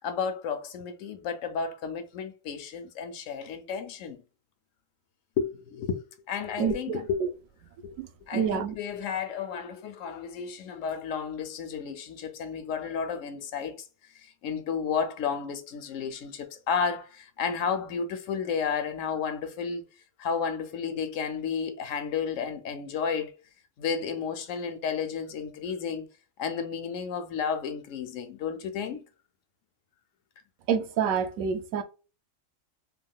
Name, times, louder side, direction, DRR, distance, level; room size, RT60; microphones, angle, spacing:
voice 1, 0.0-4.2 5.4-7.3 7.8-8.0 8.3-13.9 14.1-19.8 20.2-23.3 23.8-26.1 26.4-29.1, left 6 dB, 70° left, 1.0 m, -32 dB
voice 2, 6.6-7.3 8.0-8.1 8.3-8.7 30.7-31.8, right 7 dB, 90° right, 1.0 m, -28 dB
3.5 x 2.7 x 2.3 m
omnidirectional pair, 1.4 m